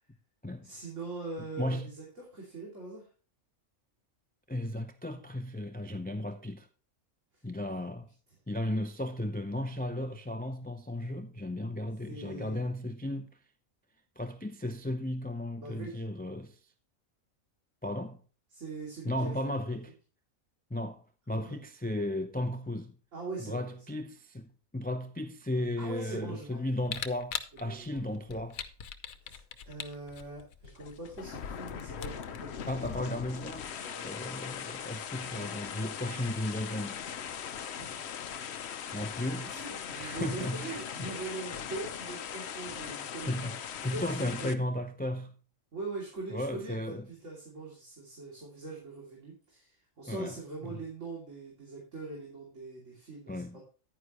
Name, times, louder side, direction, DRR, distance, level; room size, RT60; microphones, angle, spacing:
voice 1, 0.6-3.0 7.3-7.4 12.1-12.7 15.6-16.0 18.5-19.5 21.3-21.6 23.1-23.8 25.8-26.8 27.5-28.0 29.2-32.8 33.8-34.1 37.8-38.5 39.4-43.5 43.9-44.7 45.7-53.6, right 3 dB, 60° right, 3.2 m, -42 dB
voice 2, 1.6-1.9 4.5-6.7 7.4-8.1 8.5-13.3 14.2-16.6 17.8-18.2 19.0-19.9 20.7-22.9 23.4-28.6 32.7-33.7 34.0-37.0 38.9-39.6 39.9-41.1 43.3-45.4 46.3-47.0 50.1-50.4 50.6-50.7 53.3-53.6, left 1 dB, 15° left, 0.3 m, -35 dB
Camera, 26.9-33.6, left 8 dB, 80° left, 1.2 m, -42 dB
sound 1, 30.7-44.5, left 8 dB, 60° left, 0.9 m, -40 dB
10.0 x 9.6 x 3.0 m
omnidirectional pair, 1.4 m